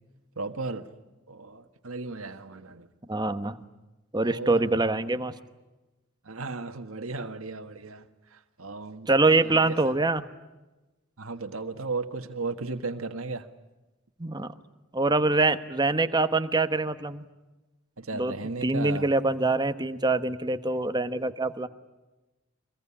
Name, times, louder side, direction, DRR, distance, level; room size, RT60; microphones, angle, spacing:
voice 1, 0.3-0.9 1.3-2.9 4.2-4.7 6.2-9.1 9.4-9.9 11.2-13.5 18.0-19.1, right 3 dB, 75° right, 1.6 m, -35 dB
voice 2, 3.1-3.6 4.1-5.3 9.1-10.3 14.2-14.5 14.9-17.3 18.1-18.3 18.6-21.7, right 2 dB, 20° right, 1.1 m, -24 dB
25.0 x 21.0 x 9.9 m
head